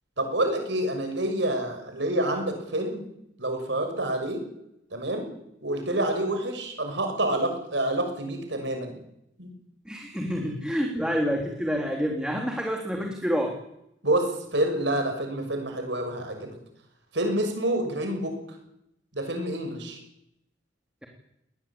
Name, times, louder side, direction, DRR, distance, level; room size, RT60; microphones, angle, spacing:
voice 1, 0.2-3.1 3.4-4.4 4.9-5.3 5.6-9.0 9.4-9.5 14.0-16.6 17.1-18.6 19.1-20.0, right 1 dB, 70° right, 5 dB, 6.4 m, -28 dB
voice 2, 9.8-13.5, equal, 5° right, 1 dB, 3.3 m, -28 dB
22.0 x 19.5 x 8.8 m, 0.80 s
head